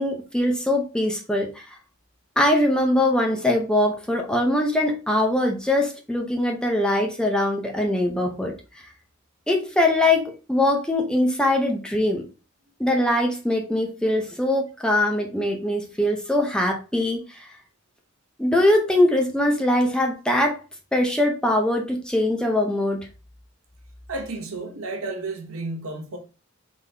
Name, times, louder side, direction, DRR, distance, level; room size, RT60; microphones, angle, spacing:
voice 1, 0.0-1.7 2.4-8.5 9.5-12.2 12.8-17.5 18.4-20.6 20.9-23.1, left 1 dB, 5° left, 0.6 m, -22 dB
voice 2, 24.1-26.2, right 2 dB, 80° right, 1.0 m, -32 dB
4.0 x 3.7 x 3.3 m
head